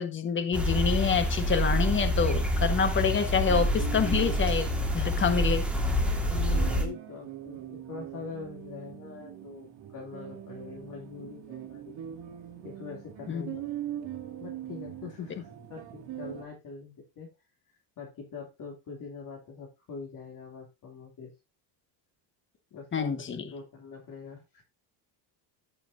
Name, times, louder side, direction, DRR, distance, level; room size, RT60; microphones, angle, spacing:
voice 1, 0.0-5.6 13.3-13.6 22.9-23.4, left 6 dB, 25° left, 1.3 m, -27 dB
sound 1, 0.5-6.8, equal, ahead, 1.7 m, -27 dB
sound 2, 3.3-16.4, right 11 dB, 65° right, 2.3 m, -42 dB
voice 2, 6.3-11.9 12.6-13.6 14.4-17.3 18.0-21.3 22.7-23.3 23.5-24.6, left 5 dB, 40° left, 2.7 m, -43 dB
14.5 x 5.7 x 2.6 m
cardioid pair, 145°, 49 cm